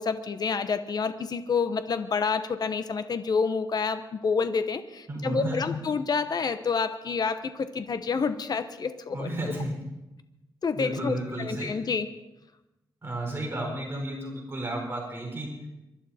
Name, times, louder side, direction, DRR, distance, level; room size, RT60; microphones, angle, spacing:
voice 1, 0.0-9.3 10.6-12.1, left 5 dB, 55° left, 10 dB, 0.9 m, -28 dB
voice 2, 5.1-5.7 9.1-9.7 10.7-11.7 13.0-15.5, right 1 dB, 30° right, -1 dB, 4.4 m, -32 dB
24.0 x 12.0 x 4.3 m, 0.97 s
wide cardioid pair, 115°, 8 cm